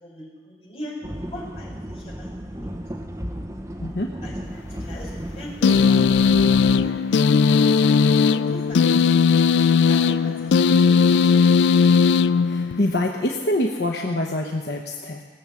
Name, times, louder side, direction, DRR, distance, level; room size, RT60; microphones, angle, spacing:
voice 1, 0.0-1.0 1.3-2.3 2.6-2.7 4.2-4.3 4.8-8.0 8.3-9.4 9.8-11.5, equal, 35° left, -6 dB, 4.8 m, -40 dB
sound 1, 1.0-6.9, equal, 15° right, 0.8 m, -34 dB
voice 2, 3.8-4.1 12.4-15.2, left 1 dB, 70° left, 1 dB, 0.9 m, -25 dB
sound 2, 5.6-13.0, left 5 dB, 90° left, 0.3 m, -17 dB
18.5 x 7.1 x 7.5 m, 1.5 s
head